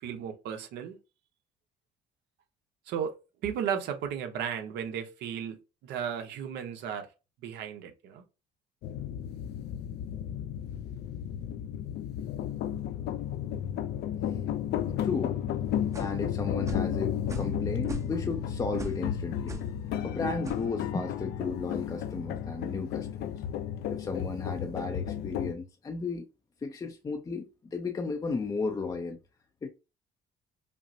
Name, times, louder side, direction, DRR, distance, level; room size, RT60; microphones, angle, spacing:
voice 1, 0.0-1.0 2.9-3.2 3.4-7.1 7.4-8.2, right 8 dB, 80° right, 0.9 m, -34 dB
sound 1, 8.8-25.5, left 10 dB, 75° left, 0.4 m, -33 dB
voice 2, 15.0-15.6 16.0-19.6 20.0-23.3 23.9-26.3 26.6-29.2 29.6-29.7, left 4 dB, 20° left, 0.5 m, -34 dB
sound 2, 15.9-16.2 16.7-16.9 17.3-17.6 17.8-18.3 18.8-19.0 19.5-19.7 20.4-20.6, right 2 dB, 20° right, 0.7 m, -39 dB
5.4 x 2.0 x 2.6 m
cardioid pair, 110°, 17 cm